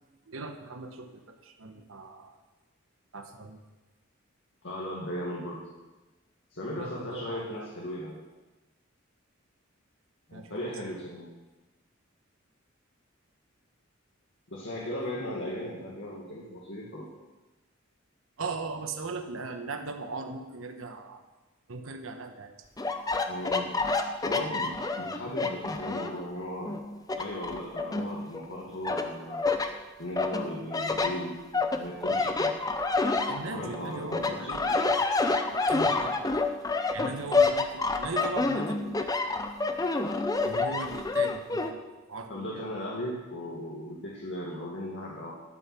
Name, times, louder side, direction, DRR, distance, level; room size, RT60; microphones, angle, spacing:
voice 1, 0.2-2.4 3.1-3.6 6.7-7.7 10.3-10.6 10.9-11.1 14.8-15.0 18.4-21.2 21.7-22.6 33.3-34.9 35.5-36.5 36.9-39.6 40.4-42.6, right 3 dB, 85° right, 6 dB, 1.1 m, -39 dB
voice 2, 4.6-5.7 6.5-8.2 10.3-11.3 14.5-17.1 23.3-23.7 24.2-26.8 27.1-29.4 30.0-32.6 33.5-34.8 42.3-45.3, left 1 dB, 65° left, -4 dB, 1.9 m, -37 dB
sound 1, 22.8-26.2 26.7-28.4 28.8-29.7 30.2-33.8 34.1-41.7, left 3 dB, 20° left, 0.6 m, -28 dB
12.0 x 6.8 x 6.2 m, 1.1 s
head